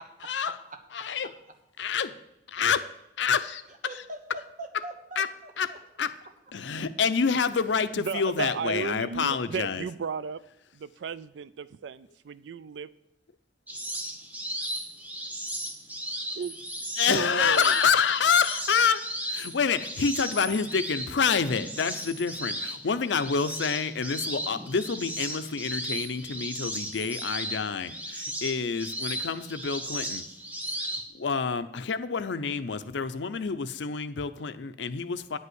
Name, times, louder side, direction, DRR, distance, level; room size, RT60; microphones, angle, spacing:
voice 1, 0.9-1.3 1.8-2.1 2.5-2.9 3.2-3.6 5.2-5.3 5.6-5.7 6.0-6.1 6.5-9.8 17.0-30.2 31.1-35.4, left 6 dB, 90° left, 12 dB, 0.6 m, -27 dB
voice 2, 3.7-5.8, right 1 dB, 45° right, 5 dB, 1.3 m, -42 dB
voice 3, 8.0-10.4 10.7-12.9 16.4-16.5 17.1-17.8, right 6 dB, 90° right, 17 dB, 0.4 m, -34 dB
sound 1, 13.7-31.1, equal, 10° right, 1.0 m, -35 dB
9.9 x 5.5 x 8.0 m, 0.84 s
head